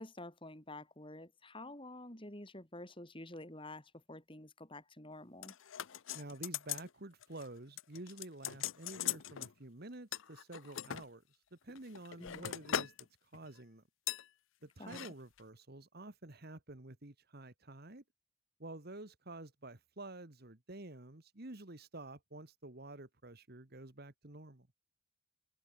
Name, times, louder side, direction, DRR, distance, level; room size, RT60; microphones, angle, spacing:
voice 1, 0.0-5.5 12.2-12.6 14.8-15.1, left 1 dB, 25° left, 3.7 m, -49 dB
sound 1, 5.4-6.9 7.2-7.5 7.8-9.5 10.1-11.0 11.7-13.0 13.3-13.6 14.1-14.3 14.8-15.1 15.4-15.5, left 10 dB, 60° left, 0.5 m, -40 dB
voice 2, 6.1-11.2 11.5-13.1 13.3-13.8 14.6-18.0 18.6-24.7, right 2 dB, 45° right, 1.7 m, -50 dB
head